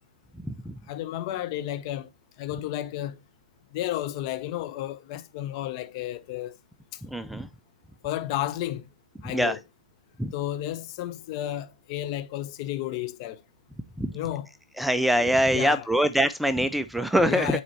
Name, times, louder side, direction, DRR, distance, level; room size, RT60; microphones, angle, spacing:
voice 1, 0.9-2.1 2.4-3.2 3.7-6.6 8.0-8.9 9.2-9.6 10.3-13.4 14.1-14.5 15.5-15.9 17.2-17.6, left 13 dB, 45° left, 0.8 m, -32 dB
voice 2, 7.1-7.5 9.3-9.6 10.2-10.3 14.0-14.1 14.8-17.6, equal, ahead, 0.3 m, -24 dB
8.7 x 4.2 x 3.0 m
figure-of-eight pair, 110°, 4 cm